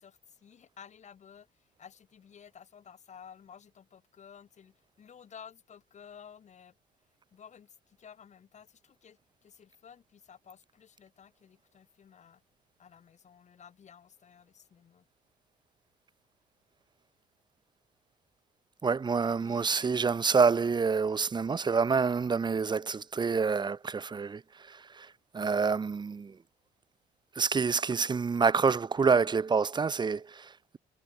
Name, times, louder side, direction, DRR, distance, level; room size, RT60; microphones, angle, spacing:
voice 1, 0.0-6.7 7.3-12.4 12.8-15.1 19.4-19.9, left 7 dB, 45° left, 7.6 m, -54 dB
voice 2, 18.8-26.4 27.3-30.8, right 5 dB, 25° right, 1.3 m, -27 dB
cardioid pair, 110°, 17 cm